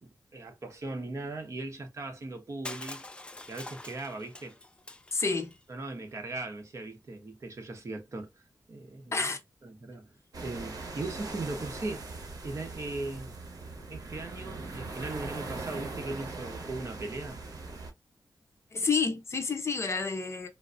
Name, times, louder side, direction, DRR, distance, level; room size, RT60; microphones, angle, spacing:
voice 1, 0.0-3.1 3.5-4.6 5.7-8.3 8.7-9.2 9.6-12.1 12.4-13.3 13.9-17.4, right 2 dB, 45° right, 1.0 m, -39 dB
Crushing, 2.6-5.6, left 2 dB, 15° left, 0.3 m, -45 dB
voice 2, 5.1-5.6 9.1-9.4 18.7-20.5, left 4 dB, 40° left, 0.7 m, -29 dB
sound 1, 10.3-17.9, right 3 dB, 60° right, 1.2 m, -40 dB
3.9 x 2.6 x 2.4 m
wide cardioid pair, 150°, 7 cm